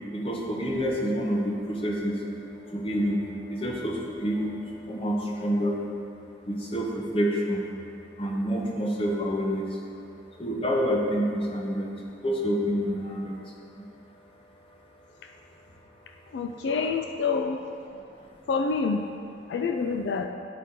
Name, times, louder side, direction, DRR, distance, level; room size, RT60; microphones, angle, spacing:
voice 1, 0.1-5.8 6.4-7.7 8.2-9.8 10.4-13.8 17.9-18.3, equal, 30° left, -2 dB, 0.8 m, -28 dB
voice 2, 16.3-17.6 18.5-19.0 19.5-20.3, left 4 dB, 80° left, 4 dB, 0.3 m, -27 dB
10.0 x 4.1 x 3.7 m, 2.5 s
head